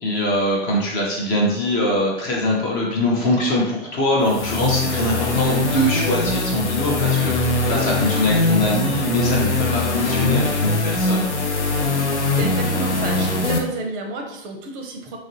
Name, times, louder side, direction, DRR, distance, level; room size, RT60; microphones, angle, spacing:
voice 1, 0.0-11.3, left 1 dB, 25° left, -2 dB, 0.5 m, -22 dB
sound 1, 4.2-13.6, left 2 dB, 85° left, 0.6 m, -21 dB
voice 2, 12.1-15.2, right 3 dB, 30° right, 4 dB, 0.6 m, -31 dB
3.0 x 2.4 x 2.8 m, 0.83 s
figure-of-eight pair, 100°, 34 cm